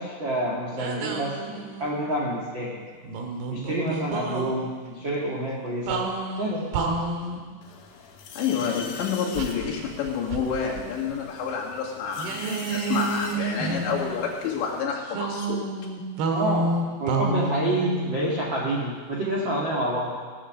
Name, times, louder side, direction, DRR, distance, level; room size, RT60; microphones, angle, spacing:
voice 1, 0.0-2.8 3.5-6.0 6.4-6.7 16.3-16.7 17.0-20.2, right 1 dB, 40° right, -5 dB, 1.8 m, -28 dB
sound 1, 0.8-2.1 3.0-4.5 5.9-7.5 9.4-10.8 11.1-11.2 12.2-14.3 15.1-18.9, right 3 dB, 75° right, 3.2 m, -30 dB
sound 2, 7.6-14.8, left 5 dB, 65° left, 2.4 m, -43 dB
voice 2, 8.4-15.7, left 6 dB, 85° left, -3 dB, 4.3 m, -29 dB
17.5 x 8.6 x 6.5 m, 1.5 s
omnidirectional pair, 5.0 m